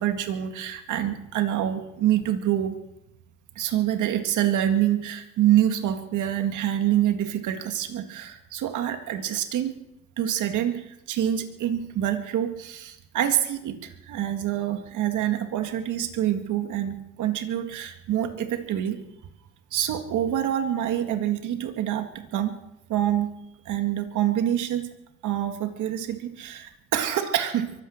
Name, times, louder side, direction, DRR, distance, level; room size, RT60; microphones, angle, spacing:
voice 1, 0.0-2.7 3.6-9.7 10.2-19.0 19.7-22.5 22.9-23.3 23.7-24.9 25.2-27.7, right 11 dB, 80° right, 6 dB, 2.0 m, -26 dB
23.5 x 9.2 x 6.6 m, 0.85 s
cardioid pair, 90°, 30 cm